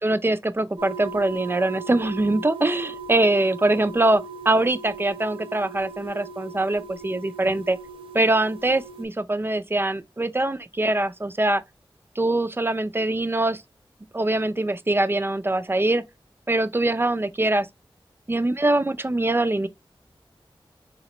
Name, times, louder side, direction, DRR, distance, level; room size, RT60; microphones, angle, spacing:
voice 1, 0.0-7.8 8.1-11.6 12.2-13.6 14.1-16.0 16.5-17.7 18.3-19.7, right 2 dB, 25° right, 0.4 m, -23 dB
sound 1, 0.8-9.0, right 4 dB, 80° right, 0.8 m, -39 dB
4.1 x 2.9 x 3.0 m
wide cardioid pair, 60°, 9 cm